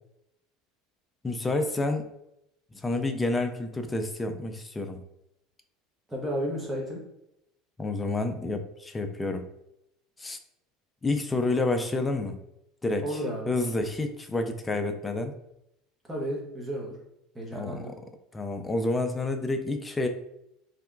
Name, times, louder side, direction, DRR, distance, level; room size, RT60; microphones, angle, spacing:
voice 1, 1.2-2.1 2.8-5.0 7.8-9.5 10.2-10.4 11.0-12.4 12.8-13.1 13.5-15.3 17.5-18.0 18.3-20.1, left 2 dB, 15° left, 6 dB, 0.3 m, -29 dB
voice 2, 6.1-7.0 13.0-13.5 16.1-16.9 17.3-18.0, equal, 10° right, -2 dB, 0.9 m, -32 dB
3.3 x 2.8 x 2.5 m, 0.82 s
supercardioid pair, 135°, 0 cm